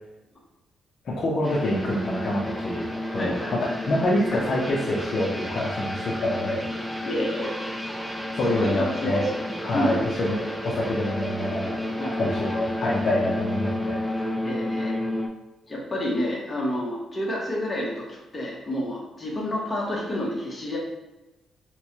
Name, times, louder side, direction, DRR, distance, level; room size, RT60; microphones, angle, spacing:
voice 1, 1.1-2.9 3.1-6.7 8.4-9.3 9.6-11.8 12.2-14.0, left 1 dB, 50° left, -4 dB, 0.6 m, -26 dB
sound 1, 1.4-15.3, left 1 dB, ahead, 0.4 m, -31 dB
voice 2, 3.2-3.5 7.0-7.8 8.5-9.4 9.7-10.0 12.0-12.2 14.4-15.0 15.7-20.8, left 1 dB, 25° left, -4 dB, 1.0 m, -29 dB
4.3 x 2.2 x 2.9 m, 1.0 s
cardioid pair, 125°, 0 cm